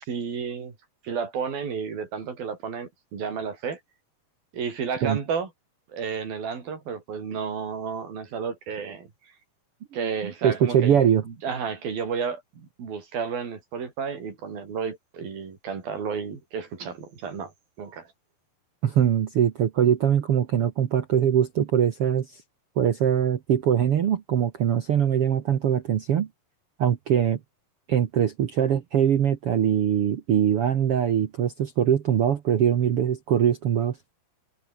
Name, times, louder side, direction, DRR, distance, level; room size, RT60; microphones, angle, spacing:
voice 1, 0.1-0.7 1.0-3.8 4.5-5.5 5.9-9.1 9.9-11.0 11.3-17.5 17.8-18.1, right 6 dB, 75° right, 6.2 m, -32 dB
voice 2, 10.2-11.2 18.8-22.3 22.8-26.3 26.8-27.4 27.9-34.0, right 9 dB, 60° right, 1.6 m, -22 dB
omnidirectional pair, 4.2 m